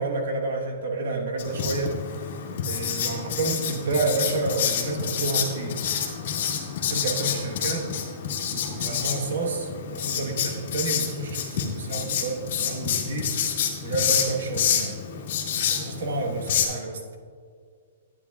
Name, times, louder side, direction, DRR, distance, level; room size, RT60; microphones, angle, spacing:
voice 1, 0.0-2.0 2.7-5.8 6.9-7.9 8.5-13.4 13.8-15.0 15.7-17.2, right 3 dB, 75° right, 1 dB, 1.2 m, -29 dB
Writing, 1.4-16.6, left 7 dB, 55° left, 1.5 m, -28 dB
11.5 x 9.8 x 2.3 m, 2.1 s
hypercardioid pair, 165°, 0 cm